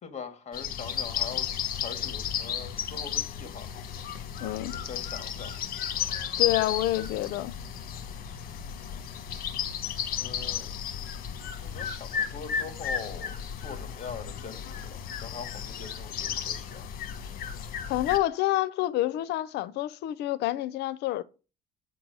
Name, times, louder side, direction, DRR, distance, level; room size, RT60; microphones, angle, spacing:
voice 1, 0.0-3.7 4.7-5.5 10.2-10.7 11.6-16.8, left 6 dB, 40° left, 1.9 m, -42 dB
sound 1, 0.5-18.2, left 8 dB, 60° left, 1.4 m, -34 dB
voice 2, 4.4-4.8 6.4-7.6 17.9-21.2, left 15 dB, 80° left, 0.6 m, -28 dB
8.7 x 3.8 x 6.2 m
cardioid pair, 110°, 17 cm